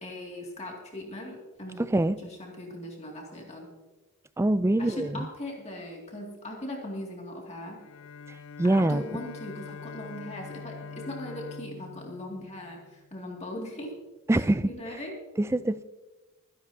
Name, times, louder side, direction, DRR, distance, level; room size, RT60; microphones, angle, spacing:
voice 1, 0.0-1.8 2.2-3.7 4.8-7.8 8.6-13.9 14.3-15.2, left 1 dB, 30° left, -1 dB, 2.2 m, -39 dB
voice 2, 1.8-2.2 4.4-5.3 8.6-9.0 14.3-14.7 15.4-15.8, right 1 dB, 10° right, 15 dB, 0.3 m, -24 dB
Bowed string instrument, 7.8-13.2, left 5 dB, 65° left, 0.4 m, -44 dB
23.0 x 11.0 x 2.7 m, 1.2 s
head